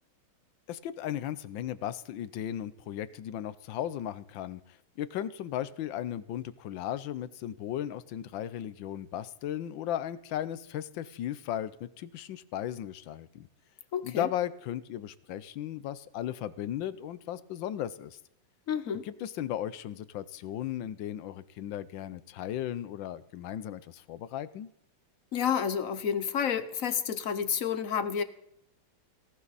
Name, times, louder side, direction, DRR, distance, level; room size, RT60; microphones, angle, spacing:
voice 1, 0.7-4.6 5.0-13.5 14.0-18.2 19.0-24.7, left 11 dB, 80° left, 15 dB, 1.5 m, -36 dB
voice 2, 13.9-14.3 18.7-19.0 25.3-28.2, left 8 dB, 55° left, 12 dB, 1.1 m, -30 dB
18.5 x 17.5 x 4.1 m, 0.78 s
omnidirectional pair, 2.1 m